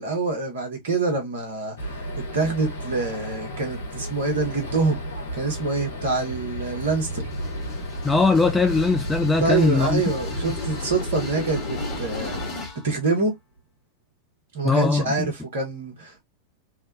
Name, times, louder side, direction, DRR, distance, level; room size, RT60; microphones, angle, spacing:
voice 1, 0.0-1.7 2.3-5.0 5.3-7.2 9.4-12.4 12.8-13.3 14.5-16.2, right 3 dB, 55° right, 1.2 m, -25 dB
sound 1, 1.8-12.5, equal, 70° left, 0.9 m, -34 dB
sound 2, 5.8-13.0, equal, 85° right, 0.5 m, -36 dB
sound 3, 7.2-12.9, left 3 dB, 30° left, 1.1 m, -37 dB
voice 2, 8.0-10.0 14.6-15.3, left 3 dB, 5° left, 0.3 m, -20 dB
2.7 x 2.2 x 2.5 m
figure-of-eight pair, 90°, 0 cm